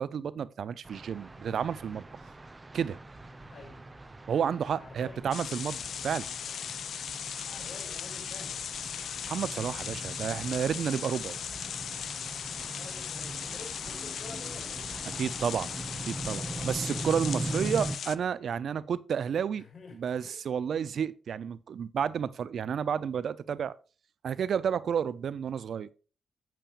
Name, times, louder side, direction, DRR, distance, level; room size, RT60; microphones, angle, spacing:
voice 1, 0.0-2.0 2.7-3.0 4.3-6.3 9.3-11.4 15.1-15.7 16.1-19.6 19.9-23.7 24.2-25.9, right 7 dB, 70° right, 0.5 m, -31 dB
sound 1, 0.8-18.0, right 2 dB, 25° right, 0.9 m, -41 dB
voice 2, 3.5-3.8 4.8-5.2 7.2-8.6 10.3-10.4 12.7-14.9 17.0-17.1 19.5-20.4, left 4 dB, 50° left, 4.3 m, -49 dB
sound 2, 5.3-18.2, left 8 dB, 70° left, 0.3 m, -38 dB
9.2 x 8.4 x 2.4 m
supercardioid pair, 50°, 0 cm